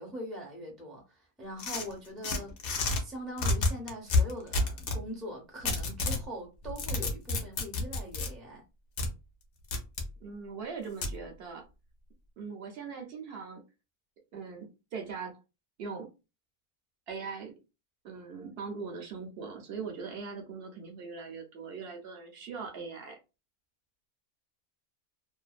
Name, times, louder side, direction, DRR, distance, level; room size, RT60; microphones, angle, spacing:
voice 1, 0.0-8.6, equal, ahead, 0.4 m, -42 dB
sound 1, 1.6-3.0 3.4-5.0 5.7-6.2 6.6-8.3 9.0-9.1 9.7-10.1 11.0-11.2, left 3 dB, 60° left, 0.8 m, -29 dB
voice 2, 10.2-11.6 12.4-13.6 14.3-14.7 14.9-15.4 15.8-16.1 17.1-17.5 18.0-23.2, right 5 dB, 60° right, 0.7 m, -40 dB
2.6 x 2.2 x 2.4 m
omnidirectional pair, 1.5 m